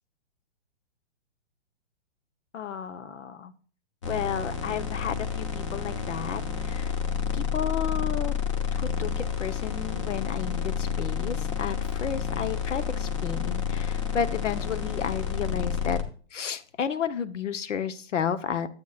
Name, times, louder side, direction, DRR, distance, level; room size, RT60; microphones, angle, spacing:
voice 1, 2.5-3.5 4.1-6.9 7.3-8.3 8.7-16.0 16.3-18.7, left 7 dB, 85° left, 13 dB, 1.2 m, -32 dB
sound 1, 4.0-16.0, left 7 dB, 25° left, 0.9 m, -30 dB
12.0 x 8.2 x 2.5 m, 0.42 s
hypercardioid pair, 180°, 36 cm